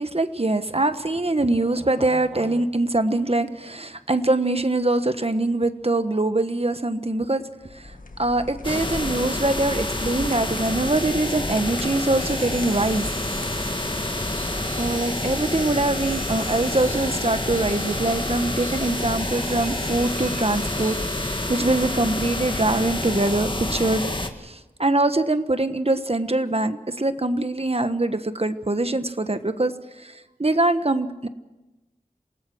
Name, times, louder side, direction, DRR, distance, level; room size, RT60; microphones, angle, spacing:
voice 1, 0.0-7.4 7.7-13.1 13.3-13.5 14.8-24.1 24.4-31.3, right 2 dB, 45° right, 10 dB, 1.3 m, -23 dB
sound 1, 7.6-14.9, left 2 dB, 70° left, 1.5 m, -43 dB
sound 2, 8.6-24.3, left 1 dB, 35° left, 2.0 m, -28 dB
sound 3, 12.2-22.0, right 3 dB, 80° right, 4.7 m, -43 dB
27.5 x 18.5 x 6.3 m, 1.1 s
wide cardioid pair, 45°, 15 cm